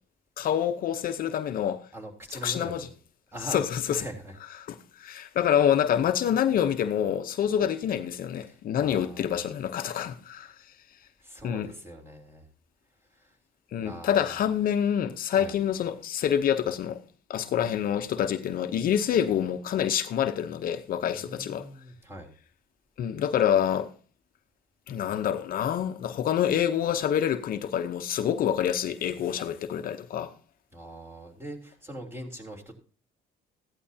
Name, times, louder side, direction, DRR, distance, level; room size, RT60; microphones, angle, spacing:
voice 1, 0.4-1.9 2.4-2.9 3.5-4.0 5.0-10.5 11.4-11.7 13.7-17.0 17.3-21.7 23.0-23.9 24.9-30.3, left 9 dB, 60° left, 0.8 m, -27 dB
voice 2, 1.9-2.9 3.3-3.6 3.9-4.4 8.5-9.5 10.4-10.5 11.2-12.5 13.1-13.4 13.8-14.5 15.3-15.6 21.1-22.3 30.7-32.8, right 1 dB, 15° right, 3.3 m, -42 dB
15.5 x 11.0 x 2.8 m
cardioid pair, 110°, 17 cm